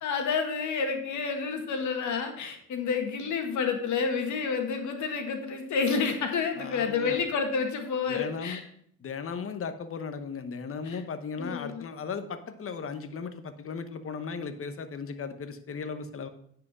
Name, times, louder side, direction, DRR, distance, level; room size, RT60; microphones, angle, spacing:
voice 1, 0.0-8.6 10.8-11.0 11.4-11.8, left 5 dB, 75° left, 4 dB, 1.9 m, -29 dB
voice 2, 6.6-7.2 8.1-8.6 9.0-16.3, left 5 dB, 45° left, 10 dB, 1.1 m, -36 dB
9.5 x 5.0 x 6.1 m, 0.68 s
cardioid pair, 90°, 30 cm